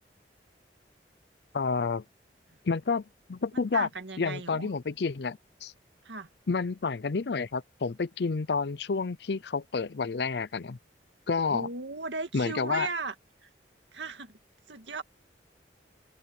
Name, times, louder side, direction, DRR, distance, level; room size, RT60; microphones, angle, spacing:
voice 1, 1.5-2.0 2.6-3.9 4.2-5.7 6.5-10.8 11.3-11.7 12.3-12.9, left 4 dB, 70° left, 0.5 m, -29 dB
voice 2, 3.5-4.7 6.0-6.3 11.5-13.1 13.4-13.5 13.9-14.3 14.7-15.0, right 4 dB, 90° right, 2.2 m, -37 dB
open air
head